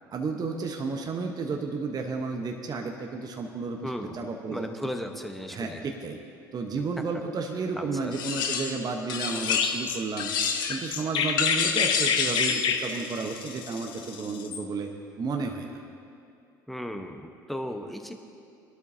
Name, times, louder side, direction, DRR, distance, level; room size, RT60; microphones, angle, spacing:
voice 1, 0.1-4.7 5.5-6.2 6.5-10.3 10.7-14.9 15.2-15.8, right 4 dB, 35° right, 3 dB, 1.1 m, -32 dB
voice 2, 3.8-4.2 4.5-5.8 7.8-8.1 16.7-18.1, equal, ahead, 5 dB, 1.1 m, -35 dB
sound 1, 8.1-8.8 9.1-9.9 10.2-10.9 11.4-12.7, left 6 dB, 80° left, 0.9 m, -29 dB
Chirp tweet, 9.5-14.6, left 6 dB, 50° left, 0.9 m, -28 dB
19.0 x 12.0 x 2.8 m, 2.6 s
hypercardioid pair, 60°, 11 cm